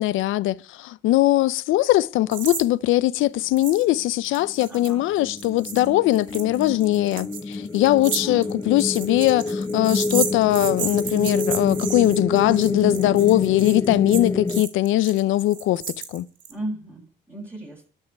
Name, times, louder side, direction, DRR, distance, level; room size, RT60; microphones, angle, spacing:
voice 1, 0.0-15.8 16.1-16.3, left 15 dB, 90° left, 0.6 m, -21 dB
sound 1, 2.3-2.6 2.9-3.0 3.6-3.9 4.2-16.5, right 8 dB, 70° right, 2.4 m, -33 dB
sound 2, 4.4-14.6, left 3 dB, 15° left, 0.7 m, -28 dB
voice 2, 4.7-5.0 8.2-8.7 16.5-17.9, right 1 dB, 10° right, 6.2 m, -35 dB
13.0 x 5.6 x 9.3 m
cardioid pair, 90°, 20 cm